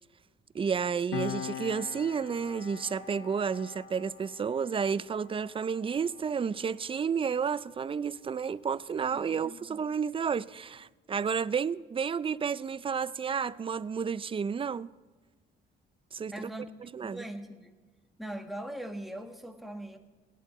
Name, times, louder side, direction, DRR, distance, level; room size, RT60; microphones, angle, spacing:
voice 1, 0.5-14.9 16.1-16.5 16.9-17.2, right 6 dB, 25° right, 0.4 m, -31 dB
Piano, 1.1-8.1 8.4-8.6, left 10 dB, 90° left, 0.6 m, -43 dB
voice 2, 9.1-9.8 16.3-16.6 17.0-17.8 18.2-20.0, right 1 dB, ahead, 1.5 m, -41 dB
17.5 x 10.5 x 4.1 m
cardioid pair, 90°, 20 cm